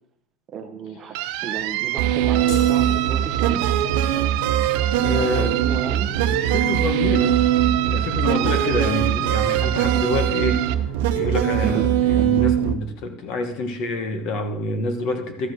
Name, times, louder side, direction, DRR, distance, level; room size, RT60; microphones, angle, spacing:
voice 1, 0.5-1.2 1.4-3.6 5.2-6.1 8.3-8.5 11.0-11.2 11.6-11.8 12.2-12.4, right 7 dB, 25° right, 5 dB, 0.8 m, -32 dB
sound 1, 1.1-10.7, right 15 dB, 55° right, 0.6 m, -28 dB
sound 2, 2.0-12.7, right 11 dB, 80° right, 0.9 m, -21 dB
sound 3, 2.5-3.8, left 3 dB, 85° left, 2.1 m, -37 dB
voice 2, 5.0-5.6 6.3-7.4 7.8-10.6 11.1-15.5, left 3 dB, 40° left, 7 dB, 1.2 m, -27 dB
13.0 x 5.2 x 6.3 m, 0.77 s
cardioid pair, 180°, 0 cm